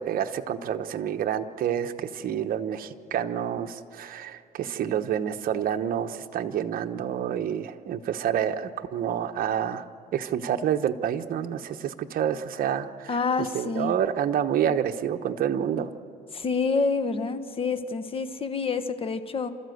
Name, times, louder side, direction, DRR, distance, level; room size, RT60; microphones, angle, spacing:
voice 1, 0.0-9.8 10.1-13.1 13.5-15.9, right 9 dB, 60° right, 7 dB, 1.1 m, -28 dB
voice 2, 13.1-13.9 16.3-19.5, left 4 dB, 35° left, 10 dB, 1.2 m, -27 dB
29.0 x 13.5 x 8.0 m, 2.3 s
cardioid pair, 110°, 17 cm